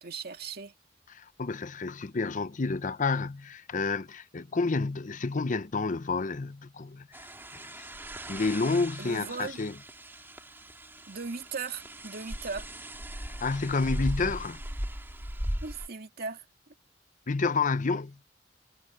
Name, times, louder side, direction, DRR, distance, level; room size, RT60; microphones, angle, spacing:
voice 1, 0.0-0.7 9.0-9.6 11.1-12.7 15.6-16.5, right 4 dB, 55° right, 2.2 m, -38 dB
voice 2, 1.1-7.3 7.5-7.9 8.3-9.7 13.4-14.6 17.3-18.2, left 4 dB, 45° left, 0.7 m, -30 dB
sound 1, 7.1-15.9, equal, 10° right, 2.1 m, -38 dB
head